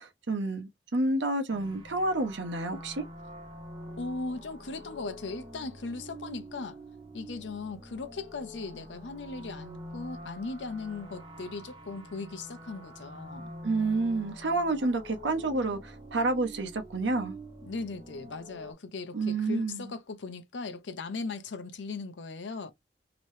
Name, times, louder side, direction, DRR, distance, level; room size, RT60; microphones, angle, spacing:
voice 1, 0.0-3.0 13.6-17.3 19.1-19.9, right 2 dB, 80° right, 0.8 m, -29 dB
sound 1, 1.5-18.7, equal, 30° right, 1.1 m, -46 dB
voice 2, 4.0-6.8 7.1-13.5 17.6-22.7, left 3 dB, 85° left, 0.6 m, -38 dB
2.9 x 2.7 x 3.1 m
head